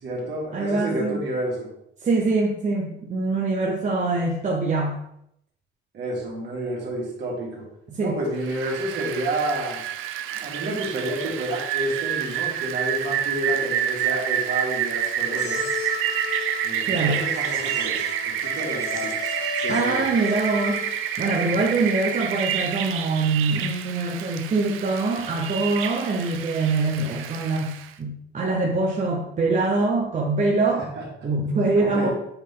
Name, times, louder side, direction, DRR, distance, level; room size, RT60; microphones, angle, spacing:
voice 1, 0.0-1.7 5.9-7.6 8.0-9.8 10.3-15.6 16.6-19.4 19.6-20.0 30.8-31.0 31.8-32.1, right 1 dB, 55° right, -3 dB, 2.6 m, -30 dB
voice 2, 0.5-1.2 2.0-5.0 7.9-8.2 16.8-17.2 19.7-30.9 31.2-32.1, right 3 dB, 35° right, -1 dB, 0.9 m, -24 dB
Rain, 8.4-27.9, right 9 dB, 80° right, 0.6 m, -28 dB
sound 1, 15.2-21.1, left 6 dB, 55° left, 1.9 m, -34 dB
7.9 x 4.0 x 3.8 m, 0.75 s
cardioid pair, 120°, 21 cm